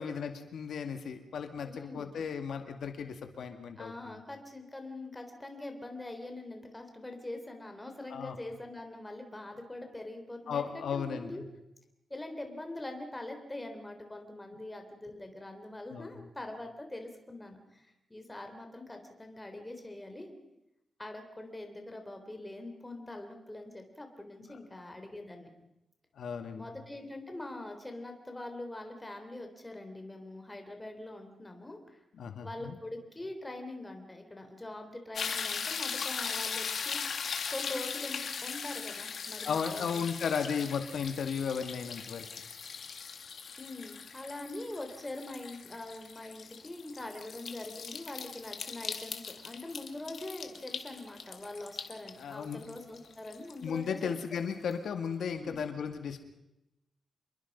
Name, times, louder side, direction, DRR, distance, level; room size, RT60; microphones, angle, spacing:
voice 1, 0.0-4.2 8.1-8.4 10.5-11.4 15.9-16.1 26.2-26.6 32.2-32.8 39.4-42.3 52.2-52.6 53.6-56.2, left 6 dB, 85° left, 7 dB, 2.1 m, -35 dB
voice 2, 1.7-2.2 3.8-11.4 12.1-20.4 21.0-25.5 26.5-32.0 32.4-37.0 37.5-40.0 43.6-54.1 55.4-55.6, left 2 dB, 10° left, 4 dB, 3.5 m, -43 dB
sound 1, 35.2-54.2 54.7-54.8, left 6 dB, 60° left, 2.0 m, -39 dB
27.0 x 22.5 x 5.4 m, 0.89 s
wide cardioid pair, 145°, 0 cm